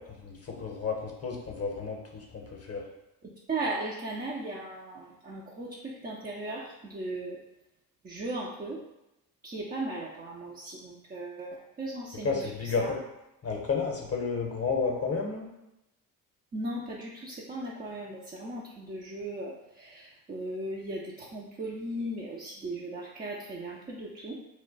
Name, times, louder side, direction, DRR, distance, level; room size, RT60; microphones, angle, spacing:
voice 1, 0.0-2.8 12.2-13.0 13.4-15.5, left 4 dB, 30° left, 1 dB, 0.7 m, -31 dB
voice 2, 3.2-7.4 8.0-8.8 9.4-12.9 16.5-24.4, right 2 dB, 20° right, -4 dB, 0.3 m, -37 dB
2.2 x 2.2 x 3.8 m, 0.93 s
hypercardioid pair, 50°, 50 cm